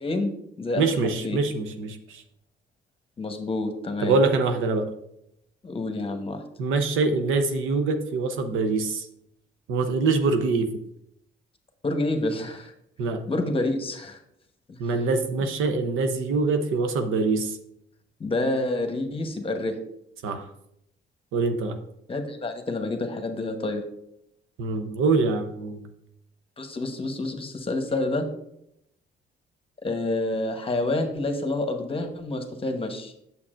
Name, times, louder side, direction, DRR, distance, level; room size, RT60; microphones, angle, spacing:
voice 1, 0.0-1.4 3.2-4.2 5.6-6.4 11.8-12.7 13.3-14.2 14.7-14.8 18.2-19.8 22.1-23.8 26.6-28.3 29.8-33.1, left 2 dB, 30° left, 6 dB, 1.0 m, -28 dB
voice 2, 0.8-2.2 4.0-4.9 6.6-9.1 9.7-10.7 13.0-13.2 14.8-17.6 20.2-20.5 21.3-21.8 24.6-25.8, right 3 dB, 90° right, 7 dB, 0.8 m, -24 dB
8.4 x 6.9 x 2.5 m, 0.78 s
cardioid pair, 90°, 20 cm